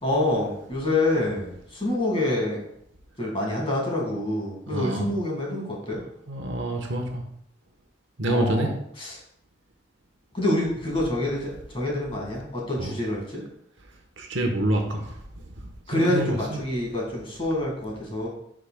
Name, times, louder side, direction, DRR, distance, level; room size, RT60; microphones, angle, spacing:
voice 1, 0.0-2.6 3.2-6.0 8.3-9.2 10.3-13.4 15.9-18.3, left 1 dB, 25° left, -2 dB, 1.9 m, -27 dB
voice 2, 4.7-5.1 6.3-7.2 8.2-8.7 12.8-12.9 14.2-15.2 15.5-16.6, right 1 dB, 65° right, 3 dB, 1.1 m, -27 dB
10.5 x 5.0 x 2.3 m, 0.71 s
head